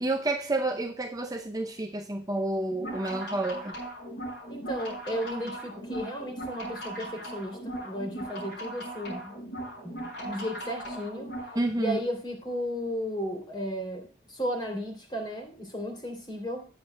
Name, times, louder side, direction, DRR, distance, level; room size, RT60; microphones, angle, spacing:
voice 1, 0.0-3.7 11.6-12.0, right 2 dB, 20° right, 4 dB, 0.6 m, -29 dB
sound 1, 2.7-11.6, right 1 dB, 65° left, 5.2 m, -38 dB
voice 2, 4.5-9.4 9.8-11.3 11.8-16.7, equal, 25° left, 3 dB, 3.1 m, -34 dB
17.5 x 7.2 x 2.2 m, 0.39 s
head